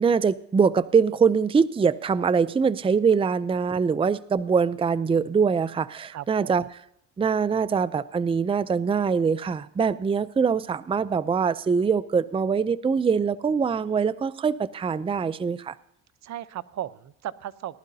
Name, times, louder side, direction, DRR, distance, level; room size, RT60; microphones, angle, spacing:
voice 1, 0.0-6.6 7.2-15.7, right 6 dB, 20° right, 15 dB, 0.5 m, -23 dB
voice 2, 6.1-6.5 16.2-17.8, right 11 dB, 65° right, 15 dB, 0.7 m, -36 dB
19.0 x 11.5 x 2.7 m, 0.71 s
cardioid pair, 90°, 30 cm